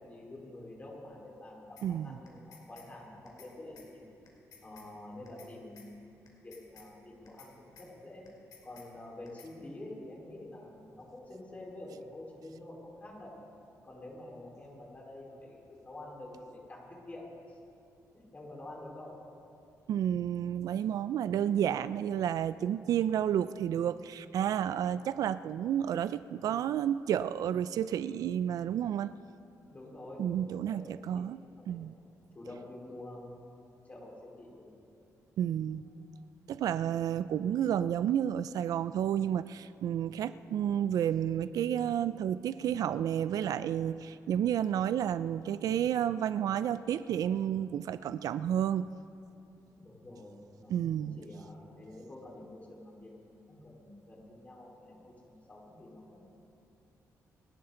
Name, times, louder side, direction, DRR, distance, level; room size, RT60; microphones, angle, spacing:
voice 1, 0.0-4.1 4.6-8.2 8.6-13.4 13.8-17.6 18.3-19.2 29.7-31.8 32.3-33.5 33.8-34.7 49.7-56.2, left 1 dB, 25° left, -3 dB, 4.3 m, -48 dB
sound 1, 1.8-1.9 2.3-2.9 3.3-3.5 3.8-3.9 4.3-4.9 5.3-5.5 5.8-5.9 6.3-6.9 7.3-7.5 7.8-7.9 8.3-8.9 9.3-9.5, left 6 dB, 80° left, 3.0 m, -55 dB
voice 2, 1.8-2.2 19.9-29.1 30.2-31.4 31.7-31.9 35.4-35.9 36.5-48.9 50.7-51.2, right 10 dB, 75° right, 15 dB, 0.4 m, -31 dB
28.5 x 11.5 x 3.9 m, 2.8 s
cardioid pair, 120°, 6 cm